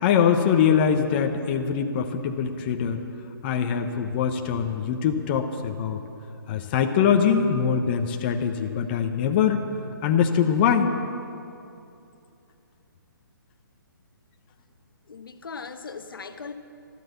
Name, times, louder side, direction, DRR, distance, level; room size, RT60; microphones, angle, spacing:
voice 1, 0.0-3.0 3.4-6.0 6.5-9.6 10.0-10.9, left 7 dB, 25° left, 5 dB, 0.9 m, -23 dB
voice 2, 15.1-16.5, left 5 dB, 70° left, 8 dB, 1.1 m, -38 dB
13.5 x 13.0 x 7.1 m, 2.7 s
hypercardioid pair, 155°, 12 cm